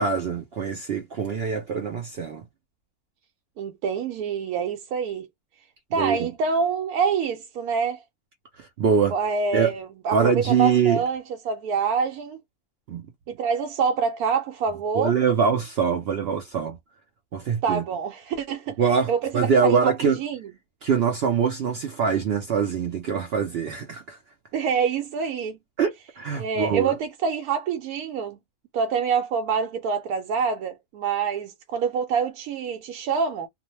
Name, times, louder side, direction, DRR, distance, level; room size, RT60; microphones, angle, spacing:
voice 1, 0.0-2.4 5.9-6.3 8.6-9.1 9.5-9.7 10.1-11.0 12.9-13.0 14.9-16.8 17.3-17.8 18.8-20.2 20.8-24.2 25.8-26.9, right 6 dB, 65° right, 0.6 m, -23 dB
voice 2, 3.6-5.3 5.9-8.0 9.1-12.4 13.3-15.1 17.6-18.8 19.1-19.8 20.2-20.5 24.5-25.6 26.4-28.4 28.7-33.5, right 5 dB, 85° right, 1.1 m, -26 dB
2.5 x 2.1 x 2.9 m
omnidirectional pair, 1.5 m